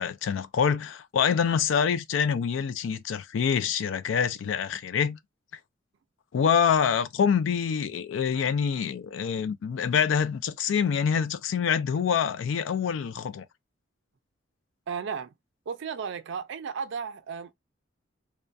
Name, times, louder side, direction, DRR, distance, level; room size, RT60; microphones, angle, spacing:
voice 1, 0.0-5.2 6.3-13.4, left 7 dB, 75° left, 0.3 m, -26 dB
voice 2, 14.9-15.3 15.7-17.5, right 6 dB, 70° right, 0.4 m, -34 dB
2.2 x 2.2 x 2.5 m
head